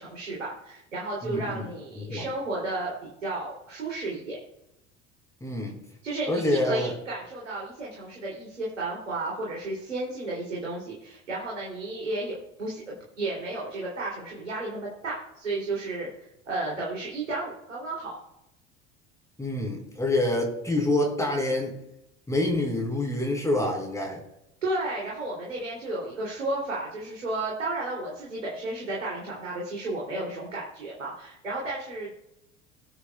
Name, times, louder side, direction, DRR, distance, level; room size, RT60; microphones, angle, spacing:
voice 1, 0.0-4.4 6.0-18.1 24.6-32.1, right 2 dB, 80° right, -5 dB, 3.0 m, -33 dB
voice 2, 1.2-1.7 2.0-2.3 5.4-5.8 6.3-6.9 19.4-21.7 22.3-24.2, left 1 dB, 10° left, -1 dB, 4.4 m, -27 dB
20.0 x 8.2 x 2.3 m, 0.86 s
figure-of-eight pair, 70°, 37 cm